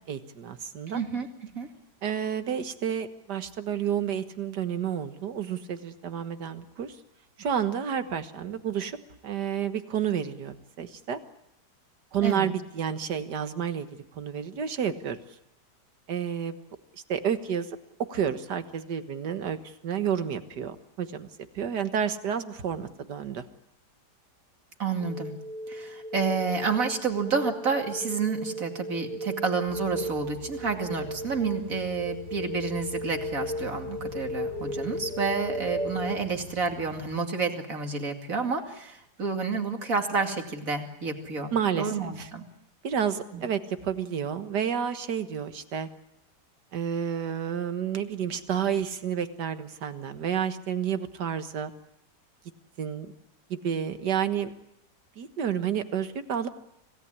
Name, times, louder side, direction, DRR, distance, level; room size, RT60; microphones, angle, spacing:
voice 1, 0.1-1.0 2.0-6.9 7.4-9.0 9.2-11.2 12.1-15.2 16.1-16.6 17.1-17.8 18.1-21.3 21.6-23.5 41.5-42.3 42.8-45.9 46.7-51.7 52.8-53.1 53.5-54.5 55.2-56.5, right 8 dB, 75° right, 9 dB, 2.0 m, -30 dB
voice 2, 0.9-1.7 12.2-12.5 24.8-25.4 25.7-42.4 43.3-43.4, right 4 dB, 50° right, 4 dB, 2.8 m, -30 dB
sound 1, 25.0-36.2, equal, ahead, 2.4 m, -35 dB
sound 2, 29.6-37.2, left 2 dB, 25° right, 3.0 m, -46 dB
26.0 x 17.5 x 9.9 m, 0.82 s
omnidirectional pair, 1.8 m